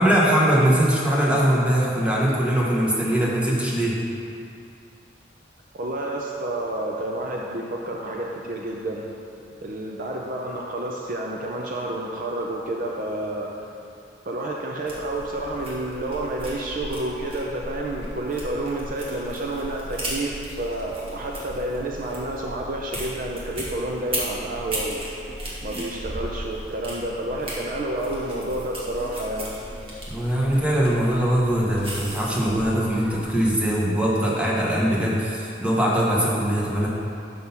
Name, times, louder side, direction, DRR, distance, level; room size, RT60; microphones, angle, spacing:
voice 1, 0.0-4.0 30.1-36.9, right 1 dB, 5° right, -5 dB, 1.0 m, -21 dB
voice 2, 5.7-9.0 9.6-13.5 14.3-25.0 25.6-29.5, right 1 dB, 45° right, -1 dB, 0.5 m, -29 dB
sound 1, 14.9-33.6, right 1 dB, 30° right, 1.3 m, -36 dB
6.3 x 5.4 x 5.6 m, 2.5 s
head